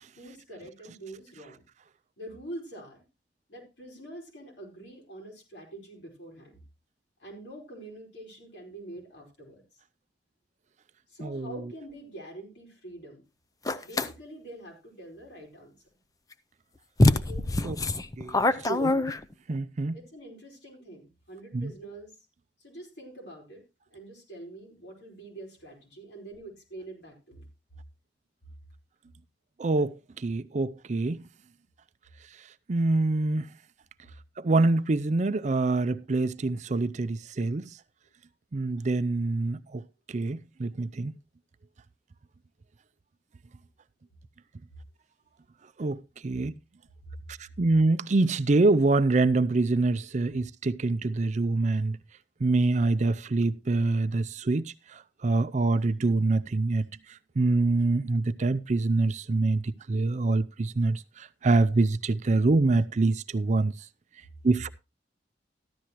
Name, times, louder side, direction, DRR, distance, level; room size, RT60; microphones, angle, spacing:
voice 1, 0.2-1.6 2.2-3.0 3.5-6.6 7.2-9.6 11.1-13.2 13.8-15.7 17.1-17.5 18.7-19.1 19.9-22.2 22.6-23.6 23.9-27.5 61.7-61.9, right 1 dB, 75° left, 4.9 m, -45 dB
sound 1, 13.7-14.1 16.3-16.4 17.0-19.5, left 2 dB, 20° left, 0.5 m, -24 dB
voice 2, 19.5-20.0 21.5-21.7 29.6-31.2 32.7-33.5 34.4-37.7 38.5-39.8 40.1-41.1 45.8-46.5 47.3-52.0 52.4-56.9 57.4-63.7 64.4-64.7, right 2 dB, 40° right, 0.5 m, -25 dB
14.0 x 11.5 x 3.0 m
head